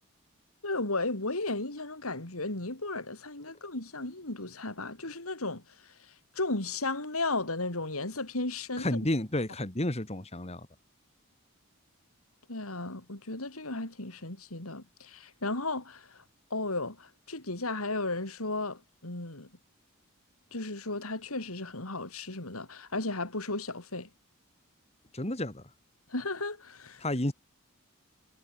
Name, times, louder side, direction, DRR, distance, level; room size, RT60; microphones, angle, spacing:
voice 1, 0.6-5.6 6.3-9.0 12.5-16.2 16.5-19.5 20.5-24.1 26.1-27.0, left 2 dB, 85° left, 4.5 m, -34 dB
voice 2, 8.8-10.7 25.1-25.6 27.0-27.3, left 1 dB, 30° left, 2.1 m, -31 dB
head